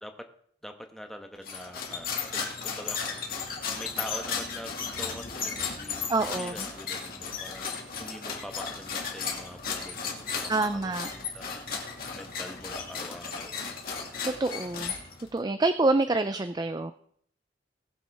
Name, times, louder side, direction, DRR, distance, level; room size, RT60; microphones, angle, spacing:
voice 1, 0.6-6.0 6.3-11.5 12.1-13.6, equal, 5° left, 4 dB, 1.1 m, -44 dB
sound 1, 1.4-15.4, left 5 dB, 55° left, 2.3 m, -35 dB
voice 2, 6.1-6.7 10.5-11.1 14.2-14.9 15.3-16.9, right 2 dB, 25° right, 10 dB, 0.4 m, -27 dB
19.5 x 7.5 x 3.5 m, 0.64 s
head